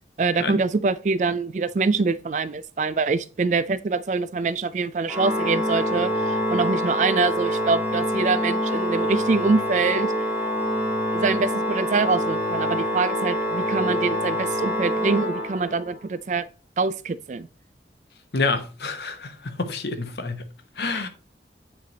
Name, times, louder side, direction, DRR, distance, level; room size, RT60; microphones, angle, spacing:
voice 1, 0.2-10.1 11.1-16.4 16.8-17.5, right 4 dB, 40° right, 0.3 m, -24 dB
Organ, 5.1-16.0, equal, 10° right, 1.5 m, -26 dB
voice 2, 18.3-21.1, left 3 dB, 70° left, 0.9 m, -28 dB
8.9 x 3.4 x 4.0 m
head